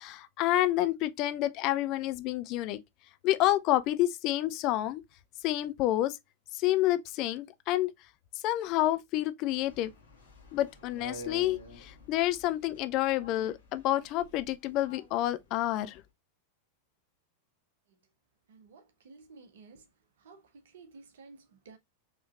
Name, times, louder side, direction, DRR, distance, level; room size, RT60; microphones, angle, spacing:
voice 1, 0.0-2.8 3.2-5.0 5.4-6.2 6.5-7.9 8.4-9.9 10.5-16.0, left 14 dB, 40° left, 0.5 m, -29 dB
sound 1, 9.6-15.1 15.9-16.0, equal, 65° left, 1.4 m, -48 dB
voice 2, 18.5-19.9 20.2-21.8, right 4 dB, 60° right, 0.9 m, -54 dB
4.8 x 3.1 x 2.4 m
figure-of-eight pair, 90°, 0 cm